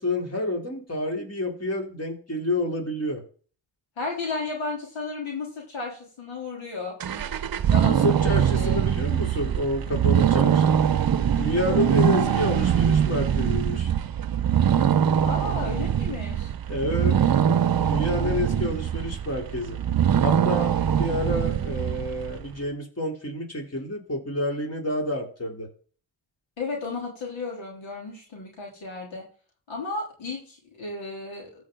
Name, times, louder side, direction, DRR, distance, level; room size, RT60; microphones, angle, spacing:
voice 1, 0.0-3.2 7.9-10.8 11.4-13.9 16.7-17.2 17.9-19.8 20.2-25.7, left 1 dB, 30° left, 0 dB, 3.7 m, -29 dB
voice 2, 4.0-7.0 7.7-8.8 11.5-11.9 15.2-16.5 18.1-18.6 26.6-29.2 29.7-31.6, left 3 dB, 75° left, -2 dB, 3.5 m, -34 dB
sound 1, 7.0-22.4, right 9 dB, 50° right, 0.8 m, -23 dB
15.0 x 5.0 x 3.9 m, 0.41 s
supercardioid pair, 45°, 47 cm